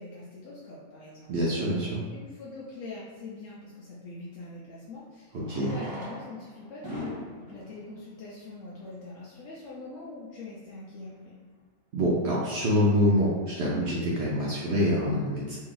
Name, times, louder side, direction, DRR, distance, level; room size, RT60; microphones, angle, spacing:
voice 1, 0.0-1.3 1.8-11.4, left 3 dB, 70° left, -6 dB, 0.7 m, -43 dB
voice 2, 1.3-2.0 5.3-5.8 11.9-15.6, equal, 75° right, -6 dB, 0.6 m, -26 dB
Fireworks, 4.2-4.3 5.3-9.1 9.9-10.0 10.1-10.2 10.4-10.6 11.1-11.3, equal, 15° right, 0.9 m, -42 dB
3.1 x 2.7 x 3.8 m, 1.3 s
omnidirectional pair, 1.9 m